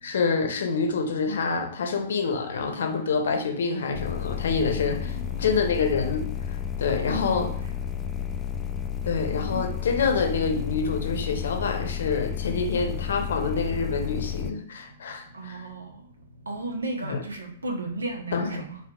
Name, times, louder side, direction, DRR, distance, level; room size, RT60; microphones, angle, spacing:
voice 1, 0.0-7.5 9.0-15.6 17.0-17.2 18.3-18.6, left 5 dB, 60° left, 3 dB, 0.8 m, -27 dB
sound 1, 3.9-14.5, left 9 dB, 15° left, 0.3 m, -32 dB
voice 2, 5.0-5.6 7.0-7.5 9.5-9.7 15.3-15.8 16.5-18.8, right 2 dB, 70° right, 2 dB, 0.9 m, -34 dB
4.2 x 3.5 x 2.3 m, 0.63 s
figure-of-eight pair, 110°, 0 cm